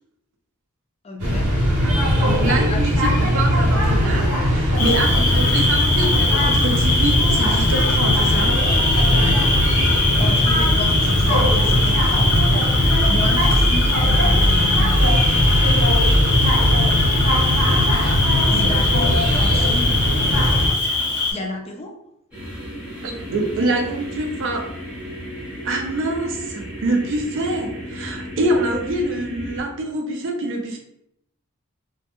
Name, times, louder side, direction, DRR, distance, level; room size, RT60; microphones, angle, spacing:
voice 1, 1.0-1.9 2.7-2.8 4.9-5.3 9.0-9.5 10.2-15.0 18.0-20.1 21.3-21.9, left 2 dB, 25° left, 0 dB, 0.4 m, -32 dB
sound 1, 1.2-20.7, equal, 85° right, 0.9 m, -19 dB
voice 2, 2.2-8.6 23.0-24.6 25.6-30.8, right 2 dB, 60° right, 1 dB, 0.5 m, -25 dB
Cricket, 4.8-21.3, left 3 dB, 85° left, 0.6 m, -22 dB
sound 2, 22.3-29.6, equal, 5° right, 0.8 m, -34 dB
2.2 x 2.2 x 2.9 m, 0.75 s
head